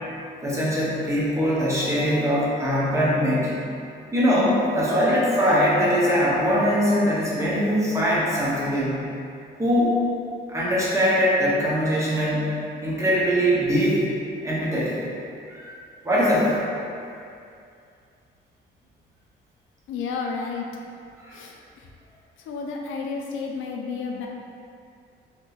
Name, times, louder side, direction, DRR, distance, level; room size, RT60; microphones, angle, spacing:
voice 1, 0.4-3.6 4.1-9.0 9.6-10.0 10.5-12.5 12.8-14.0 14.4-15.0 15.5-15.7 16.0-16.7 21.2-21.4, equal, 15° right, -8 dB, 1.0 m, -22 dB
voice 2, 19.9-20.7 21.3-21.9 22.4-24.3, left 5 dB, 80° left, 0 dB, 0.4 m, -31 dB
2.9 x 2.2 x 3.9 m, 2.5 s
cardioid pair, 90°, 20 cm